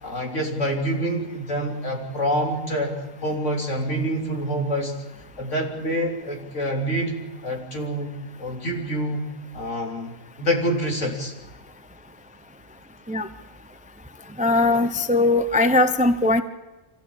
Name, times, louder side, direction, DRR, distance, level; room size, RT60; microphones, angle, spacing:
voice 1, 0.0-4.9 5.4-9.2 9.5-11.3, equal, 65° left, 1 dB, 3.8 m, -27 dB
voice 2, 14.4-16.4, left 2 dB, 5° right, 10 dB, 0.7 m, -19 dB
25.0 x 15.5 x 8.8 m, 1.1 s
omnidirectional pair, 1.4 m